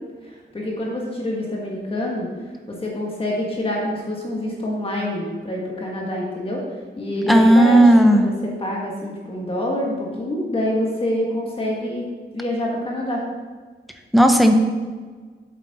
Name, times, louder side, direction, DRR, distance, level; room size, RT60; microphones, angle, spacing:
voice 1, 0.2-6.6 7.0-8.3 8.6-12.1 12.3-13.2, left 1 dB, 30° left, -3 dB, 1.6 m, -26 dB
voice 2, 7.3-8.3 14.1-14.5, right 1 dB, ahead, 4 dB, 0.7 m, -13 dB
8.4 x 7.3 x 4.2 m, 1.4 s
wide cardioid pair, 180°, 18 cm